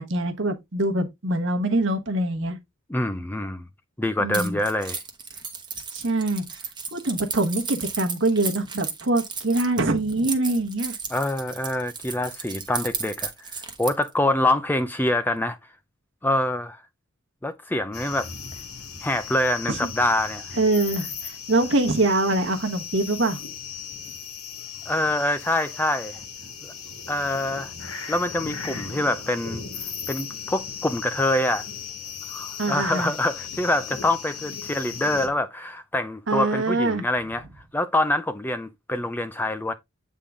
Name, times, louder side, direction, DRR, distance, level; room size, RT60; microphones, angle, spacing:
voice 1, 0.0-2.6 4.2-4.6 5.9-6.4 6.9-11.0 19.7-19.9 20.6-23.4 32.6-33.1 36.3-37.0, right 2 dB, 55° right, 1.1 m, -24 dB
voice 2, 2.9-3.7 4.0-5.0 11.1-13.5 13.8-15.6 16.2-16.8 17.4-18.3 19.0-20.5 24.9-26.2 26.6-26.7 27.1-27.7 28.1-29.6 30.1-31.6 32.3-37.5 37.7-39.7, left 1 dB, 10° left, 0.4 m, -25 dB
Keys jangling, 4.3-14.1, right 6 dB, 20° right, 0.9 m, -34 dB
sound 1, 17.9-35.3, left 6 dB, 85° left, 1.7 m, -37 dB
8.4 x 3.7 x 3.6 m
head